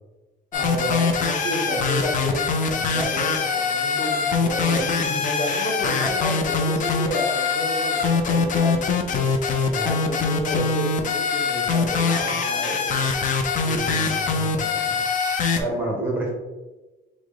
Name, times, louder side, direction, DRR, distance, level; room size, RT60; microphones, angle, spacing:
sound 1, 0.5-15.6, left 5 dB, 45° left, 0.5 m, -23 dB
voice 1, 0.5-4.9 5.2-9.3 9.7-13.1, equal, 15° left, -3 dB, 1.1 m, -30 dB
voice 2, 13.7-15.0 15.5-16.3, right 2 dB, 10° right, -2 dB, 0.8 m, -29 dB
5.9 x 2.1 x 3.8 m, 1.1 s
cardioid pair, 150°, 19 cm